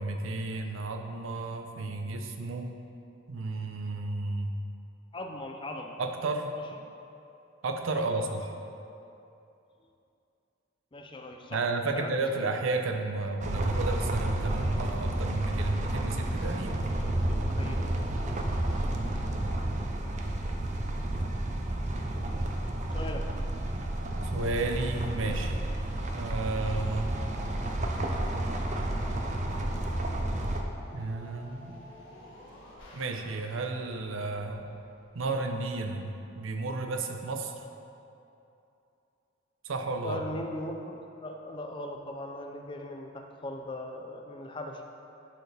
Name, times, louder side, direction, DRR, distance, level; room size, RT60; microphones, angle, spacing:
voice 1, 0.0-2.7 3.3-4.5 6.0-6.6 7.6-8.5 11.5-16.9 24.3-25.6 26.1-27.1 30.9-31.8 32.9-34.7 35.1-37.5 39.6-40.2, right 3 dB, 85° right, 4 dB, 0.6 m, -32 dB
voice 2, 5.1-6.0 7.9-8.4 10.9-11.6 12.0-12.1 17.5-17.8 22.9-23.2 40.0-40.9 41.2-44.8, left 1 dB, 25° left, 3 dB, 0.5 m, -39 dB
sound 1, 13.4-30.6, right 1 dB, 35° right, 0.5 m, -31 dB
sound 2, 27.2-35.3, left 1 dB, 80° left, 1.4 m, -51 dB
11.5 x 4.7 x 3.4 m, 2.7 s
head